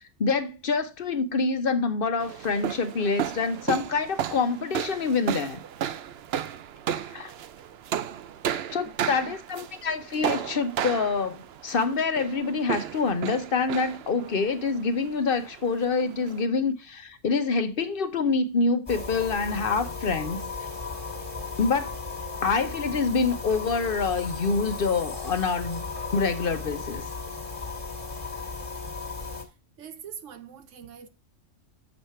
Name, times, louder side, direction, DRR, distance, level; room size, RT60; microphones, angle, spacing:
voice 1, 0.2-5.6 7.1-7.3 8.7-20.5 21.6-21.9 22.4-25.8 26.1-27.1, left 4 dB, 55° left, 0.9 m, -26 dB
sound 1, 2.2-16.5, right 9 dB, 65° right, 0.8 m, -34 dB
sound 2, 18.9-29.4, left 4 dB, 30° left, 1.8 m, -36 dB
voice 2, 29.8-31.1, right 8 dB, 85° right, 1.1 m, -43 dB
7.3 x 4.8 x 5.6 m
omnidirectional pair, 1.2 m